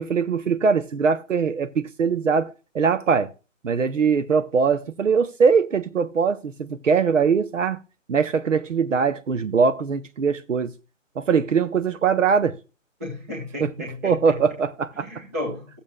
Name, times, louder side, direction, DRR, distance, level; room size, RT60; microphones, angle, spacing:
voice 1, 0.0-3.3 3.6-7.8 8.1-10.7 11.2-12.6 13.6-13.7 14.0-15.1, right 5 dB, 70° right, 0.9 m, -21 dB
voice 2, 13.0-14.3 14.9-15.8, left 1 dB, 10° right, 1.1 m, -33 dB
14.0 x 7.3 x 2.3 m
hypercardioid pair, 175°, 39 cm